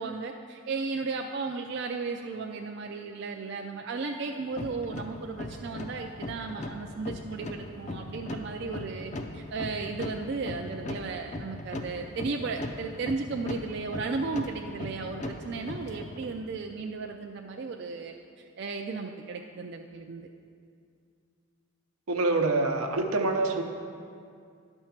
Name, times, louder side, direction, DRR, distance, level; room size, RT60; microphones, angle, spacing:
voice 1, 0.0-18.1 18.6-20.3, right 4 dB, 50° right, 2 dB, 0.4 m, -35 dB
sound 1, 4.5-16.4, left 1 dB, 35° left, 0.4 m, -39 dB
voice 2, 22.1-23.6, right 2 dB, 85° right, 4 dB, 0.8 m, -26 dB
11.0 x 4.5 x 5.8 m, 2.3 s
head